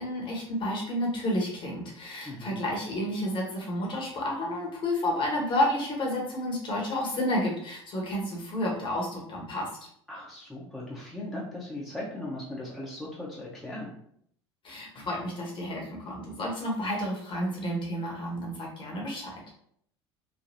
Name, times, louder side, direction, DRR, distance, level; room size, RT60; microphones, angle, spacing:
voice 1, 0.0-9.7 14.6-19.3, left 1 dB, 35° left, -1 dB, 1.1 m, -31 dB
voice 2, 2.2-2.6 10.1-13.9, left 1 dB, ahead, -5 dB, 0.8 m, -38 dB
3.2 x 2.3 x 2.6 m, 0.66 s
figure-of-eight pair, 70°, 14 cm